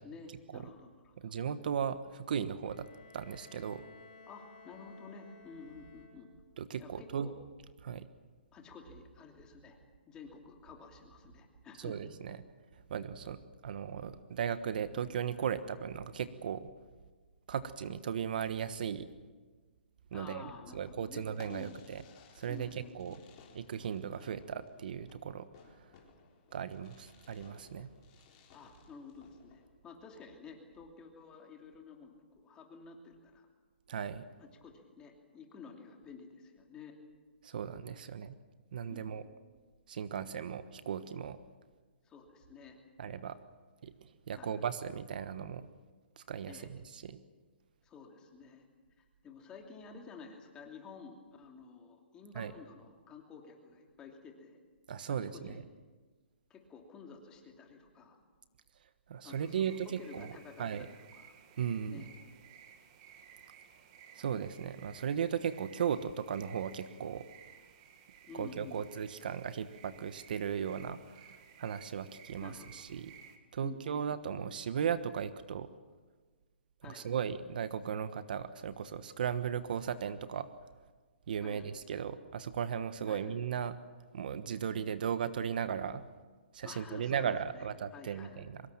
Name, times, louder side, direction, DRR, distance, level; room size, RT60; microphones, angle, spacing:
voice 1, 0.0-1.4 4.3-6.3 6.8-7.5 8.5-9.8 10.1-12.0 20.1-21.7 22.5-23.2 28.5-33.5 34.4-37.0 38.9-39.3 42.0-42.8 44.3-44.6 46.5-46.7 47.8-48.7 49.0-54.6 55.1-55.6 56.5-58.2 59.2-61.3 61.9-62.1 68.3-68.8 72.4-72.8 73.6-74.1 76.8-77.1 81.4-81.6 83.1-83.2 86.6-87.7 87.9-88.4, left 5 dB, 15° left, 2 dB, 2.8 m, -51 dB
voice 2, 1.2-2.9 3.1-3.8 6.6-7.3 7.8-8.1 11.8-12.4 12.9-16.7 17.5-19.1 20.1-22.0 22.4-23.2 23.5-25.9 26.5-27.9 33.9-34.2 37.4-38.3 38.7-39.2 39.9-41.4 43.0-43.4 43.8-43.9 44.3-45.7 46.2-47.2 52.3-52.5 54.9-55.6 59.1-60.3 60.6-60.9 61.6-62.0 64.1-67.2 68.3-73.1 73.5-75.7 76.8-80.5 81.3-83.7 84.1-86.0 86.5-88.6, right 8 dB, 50° right, 12 dB, 1.2 m, -37 dB
Bowed string instrument, 2.6-6.6, left 3 dB, 55° left, 4.1 m, -57 dB
Fireworks, 21.3-29.7, left 6 dB, 30° left, 4.0 m, -60 dB
sound 1, 59.3-73.4, right 8 dB, 30° right, 2.1 m, -57 dB
24.0 x 22.0 x 7.4 m, 1.4 s
hypercardioid pair, 160°, 6 cm